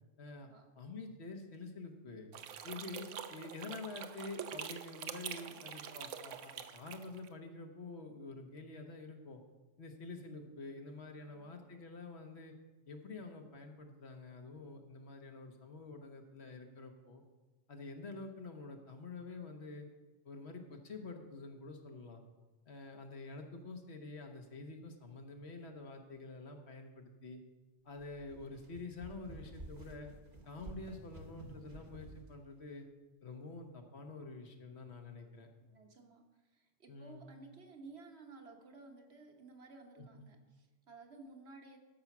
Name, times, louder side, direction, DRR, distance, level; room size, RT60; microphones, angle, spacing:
voice 1, 0.2-0.5 0.8-2.3 2.6-9.4 9.8-12.5 12.9-17.2 17.7-19.9 20.2-22.2 22.7-27.4 27.8-30.1 30.4-32.9 33.2-35.5 36.9-37.2 40.0-40.3, left 3 dB, 60° left, 4 dB, 1.3 m, -48 dB
sound 1, 2.3-7.3, right 8 dB, 80° right, 1.0 m, -45 dB
voice 2, 11.2-11.7 35.7-36.2 36.5-41.8, right 3 dB, 60° right, 3 dB, 1.4 m, -55 dB
sound 2, 28.0-32.3, right 1 dB, 40° right, 1.0 m, -52 dB
13.0 x 5.6 x 6.0 m, 1.2 s
omnidirectional pair, 1.2 m